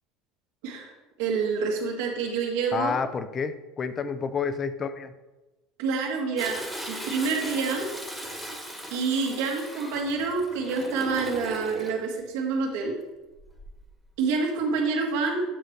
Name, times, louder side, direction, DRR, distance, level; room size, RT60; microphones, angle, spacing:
voice 1, 1.2-2.9 5.8-7.9 8.9-12.9 14.2-15.4, right 4 dB, 80° right, 0 dB, 1.7 m, -27 dB
voice 2, 2.7-5.1, left 5 dB, 30° left, 12 dB, 0.4 m, -29 dB
Toilet flush, 6.4-11.9 13.4-13.9 14.3-14.4, right 1 dB, 5° left, 1.2 m, -38 dB
8.7 x 3.1 x 6.5 m, 1.1 s
cardioid pair, 140°, 0 cm